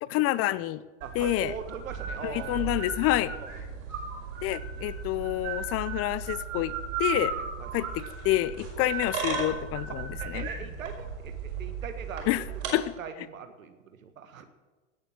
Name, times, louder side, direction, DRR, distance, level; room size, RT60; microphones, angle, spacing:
voice 1, 0.0-0.8 1.1-1.5 2.2-3.3 4.4-6.7 7.0-7.3 7.7-10.5 12.3-12.4 12.7-12.9, left 15 dB, 35° left, 18 dB, 0.6 m, -28 dB
sound 1, 1.0-12.7, right 5 dB, 70° right, 5.6 m, -35 dB
voice 2, 1.0-2.7 3.3-3.6 7.2-7.7 8.8-8.9 9.9-14.4, right 6 dB, 90° right, 9 dB, 1.7 m, -42 dB
17.5 x 7.0 x 7.6 m, 1.3 s
hypercardioid pair, 105°, 39 cm